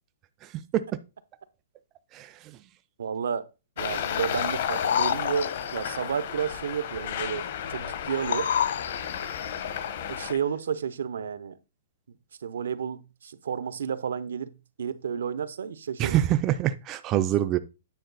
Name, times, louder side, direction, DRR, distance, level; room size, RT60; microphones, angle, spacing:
voice 1, 0.4-1.0 2.1-2.6 16.0-17.6, right 12 dB, 20° right, 0.4 m, -26 dB
voice 2, 3.0-3.5 3.8-8.5 10.1-11.6 12.4-16.2, right 7 dB, 85° right, 0.8 m, -31 dB
Traffic noise roadway noise, 3.8-10.3, left 9 dB, 50° left, 0.9 m, -32 dB
sound 1, 4.6-6.0 8.1-9.7 10.3-10.4, left 8 dB, 75° left, 0.6 m, -30 dB
9.1 x 4.9 x 3.9 m
hypercardioid pair, 165°, 0 cm